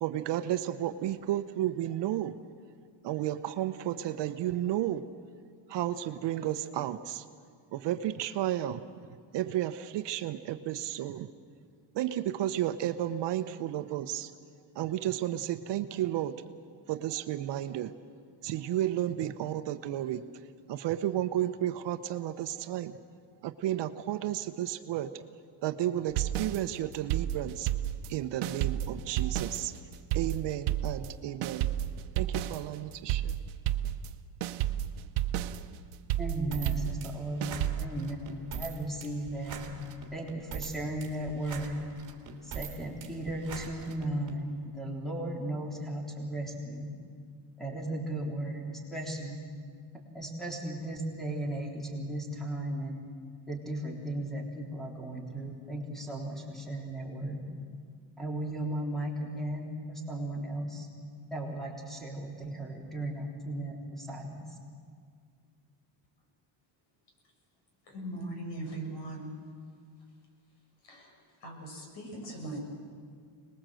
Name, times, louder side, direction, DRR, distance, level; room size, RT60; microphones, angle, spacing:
voice 1, 0.0-2.3 3.0-5.0 5.7-7.2 7.7-8.8 9.3-11.3 11.9-14.3 14.7-16.3 16.9-17.9 18.4-20.2 20.7-22.9 23.4-25.1 25.6-27.7 28.1-29.7 30.1-31.7 32.2-33.4, right 12 dB, 60° right, 10 dB, 1.0 m, -32 dB
sound 1, 26.1-28.2 28.4-34.1 34.4-37.9, right 12 dB, 80° right, 1.0 m, -32 dB
voice 2, 36.2-39.6 40.1-41.8 42.4-46.9 47.6-49.4 50.1-53.0 53.5-57.4 58.2-60.9 61.3-64.4, right 1 dB, ahead, 0 dB, 3.5 m, -36 dB
sound 2, 36.5-44.4, right 7 dB, 40° right, 2.8 m, -43 dB
voice 3, 67.9-69.3 70.8-71.1 71.4-72.6, right 2 dB, 55° left, 2 dB, 6.1 m, -40 dB
25.5 x 20.5 x 7.7 m, 2.1 s
cardioid pair, 140°, 49 cm